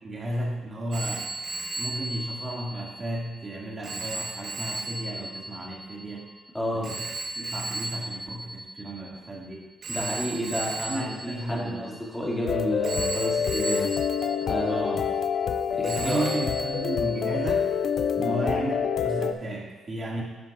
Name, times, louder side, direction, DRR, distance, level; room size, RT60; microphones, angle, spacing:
voice 1, 0.0-1.3 1.8-6.3 6.8-7.0 7.4-9.6 10.9-11.9 14.7-15.0 15.8-17.7 18.2-20.2, right 1 dB, 35° right, -3 dB, 2.0 m, -33 dB
Telephone, 0.9-9.3 9.8-12.4 12.8-15.5 15.8-17.6, right 2 dB, 50° right, 1.1 m, -36 dB
voice 2, 6.5-6.9 9.9-13.9 14.4-15.0 15.7-16.3 18.2-18.4, left 1 dB, 10° left, -4 dB, 2.2 m, -31 dB
sound 1, 12.5-19.3, left 7 dB, 60° left, 0.4 m, -27 dB
10.0 x 7.6 x 2.4 m, 1.2 s
cardioid pair, 90°, 0 cm